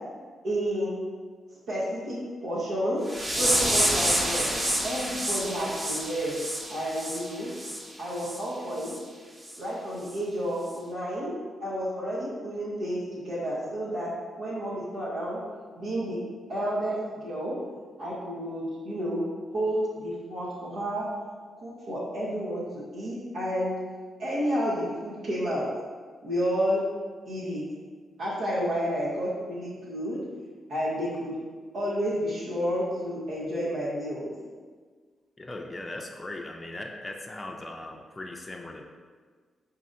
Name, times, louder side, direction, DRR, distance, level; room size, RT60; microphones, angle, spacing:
voice 1, 0.4-1.0 1.7-2.2 2.4-3.0 3.3-4.5 4.8-6.4 6.7-7.5 8.0-8.9 9.6-14.1 14.4-15.4 15.7-16.2 16.5-17.6 18.0-19.2 19.5-21.1 21.6-23.8 24.2-25.7 26.2-26.8 27.3-27.6 28.2-30.2 30.7-31.3 31.7-34.3, equal, 75° right, -10 dB, 0.8 m, -30 dB
sound 1, 3.1-7.8 8.2-8.4 8.8-9.0 9.5-9.6 10.1-10.2, right 1 dB, 25° right, 0.8 m, -28 dB
voice 2, 35.4-38.8, left 2 dB, 30° left, 2 dB, 0.4 m, -39 dB
5.0 x 2.7 x 2.5 m, 1.5 s
hypercardioid pair, 40°, 0 cm